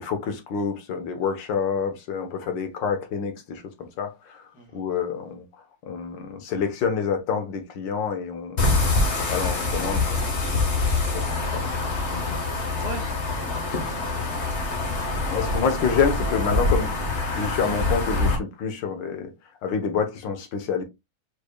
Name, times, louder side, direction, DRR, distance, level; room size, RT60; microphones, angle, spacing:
voice 1, 0.0-4.4 4.7-5.4 5.9-8.8 9.3-10.2 11.1-11.8 12.1-12.4 15.3-19.3 19.6-20.8, left 6 dB, 65° left, 1.7 m, -28 dB
sound 1, 8.6-18.4, left 2 dB, 35° left, 1.4 m, -25 dB
voice 2, 12.7-14.8, equal, 80° left, 2.6 m, -42 dB
5.1 x 4.4 x 2.2 m
omnidirectional pair, 2.3 m